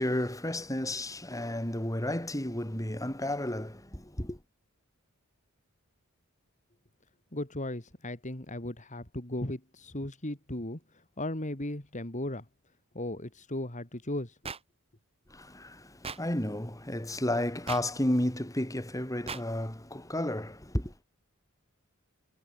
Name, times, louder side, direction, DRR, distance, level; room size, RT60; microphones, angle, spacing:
voice 1, 0.0-4.4 15.3-20.9, left 1 dB, 15° left, 4.0 m, -32 dB
voice 2, 7.3-12.4 12.9-14.4, left 1 dB, 35° left, 3.1 m, -36 dB
sound 1, 14.4-14.6 16.0-16.2 17.7-17.8 19.3-19.4, right 5 dB, 30° right, 2.4 m, -37 dB
head